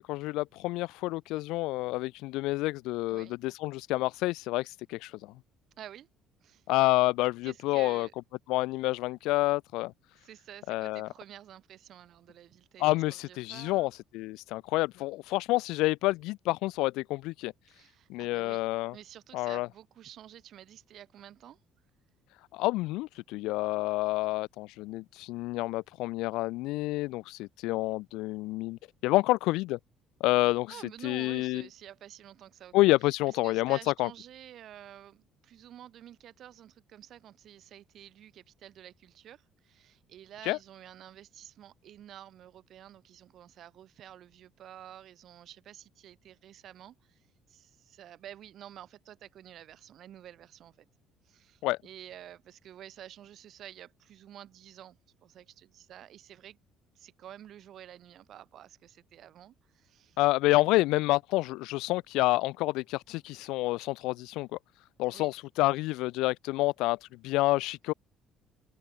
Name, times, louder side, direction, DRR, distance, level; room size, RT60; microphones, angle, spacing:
voice 1, 0.0-5.3 6.7-8.1 8.5-9.9 10.7-11.1 12.8-17.5 18.1-18.9 19.3-19.7 22.5-29.8 30.2-31.6 32.7-34.1 40.4-40.6 51.6-51.8 60.2-64.6 65.0-67.9, left 20 dB, 80° left, 0.3 m, -28 dB
voice 2, 5.8-6.1 6.4-6.7 7.4-8.1 10.1-13.9 17.7-21.6 30.7-32.7 33.0-50.9 51.2-56.6 56.9-60.2 65.1-65.3, right 11 dB, 60° right, 3.4 m, -50 dB
open air
cardioid pair, 100°, 0 cm